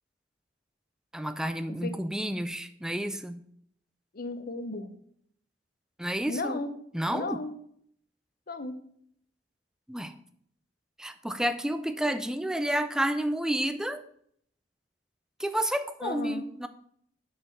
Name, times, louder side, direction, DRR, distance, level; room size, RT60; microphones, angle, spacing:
voice 1, 1.1-3.4 6.0-6.6 6.9-7.4 9.9-10.1 11.0-14.0 15.4-16.7, right 1 dB, 5° right, 10 dB, 0.4 m, -30 dB
voice 2, 4.1-5.0 6.2-6.7 7.1-7.5 8.5-8.8 16.0-16.5, left 2 dB, 55° left, 10 dB, 0.7 m, -35 dB
6.0 x 5.2 x 6.6 m, 0.66 s
head